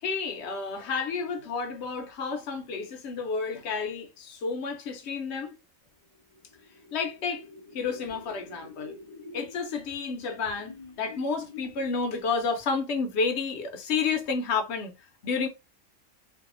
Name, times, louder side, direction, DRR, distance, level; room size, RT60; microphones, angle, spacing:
voice 1, 0.0-5.5 6.9-7.4 7.7-9.0 9.3-15.5, left 5 dB, 65° left, 0.8 m, -30 dB
sound 1, 6.1-12.6, left 5 dB, 30° left, 0.8 m, -48 dB
2.6 x 2.4 x 2.5 m
omnidirectional pair, 1.4 m